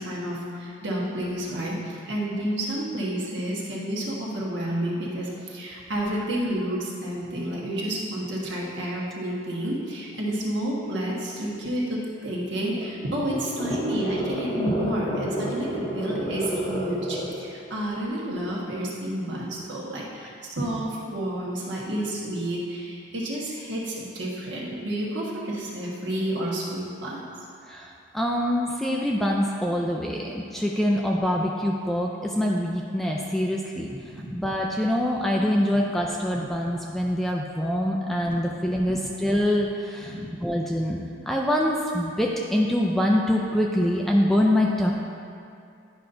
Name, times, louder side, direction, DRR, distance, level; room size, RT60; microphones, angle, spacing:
voice 1, 0.0-27.2, right 1 dB, 60° right, -4 dB, 1.3 m, -30 dB
sound 1, 12.6-17.5, equal, 20° left, 0.8 m, -31 dB
voice 2, 27.7-33.9 34.3-40.1 40.4-41.0 41.3-44.9, left 1 dB, ahead, -1 dB, 0.3 m, -24 dB
10.0 x 5.5 x 2.6 m, 2.4 s
head